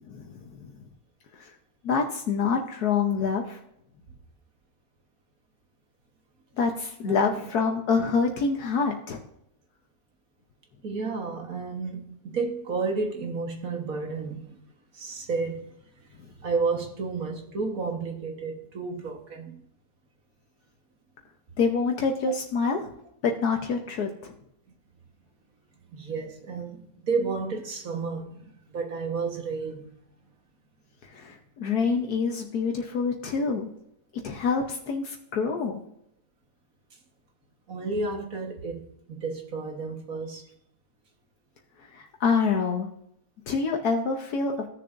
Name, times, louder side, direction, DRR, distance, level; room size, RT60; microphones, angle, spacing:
voice 1, 1.8-3.6 6.6-9.2 21.6-22.9 23.2-24.3 31.2-33.7 34.2-35.8 41.9-42.9 43.5-44.5, left 5 dB, 75° left, 3 dB, 1.4 m, -26 dB
voice 2, 7.0-7.4 10.8-14.6 14.9-15.7 16.0-16.1 16.4-19.6 25.9-29.9 37.7-40.4, right 4 dB, 60° right, 3 dB, 1.8 m, -31 dB
16.0 x 6.7 x 2.6 m, 0.77 s
omnidirectional pair, 1.7 m